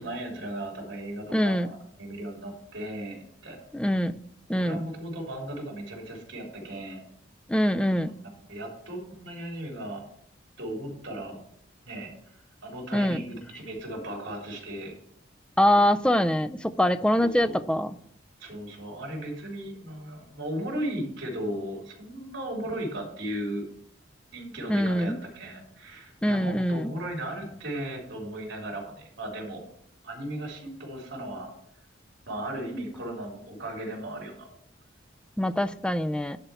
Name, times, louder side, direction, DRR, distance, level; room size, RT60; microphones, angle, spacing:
voice 1, 0.0-3.6 4.6-7.0 8.5-10.0 10.6-11.4 11.8-12.4 12.6-15.0 17.2-17.5 18.4-23.7 24.3-29.6 30.0-31.5 32.3-34.5, right 1 dB, 65° right, 0 dB, 3.6 m, -36 dB
voice 2, 1.3-1.7 3.7-4.2 4.5-4.8 7.5-8.1 12.9-13.2 15.6-17.9 24.7-25.2 26.2-26.9 35.4-36.4, equal, 5° left, 12 dB, 0.3 m, -24 dB
11.0 x 4.5 x 6.9 m, 0.69 s
head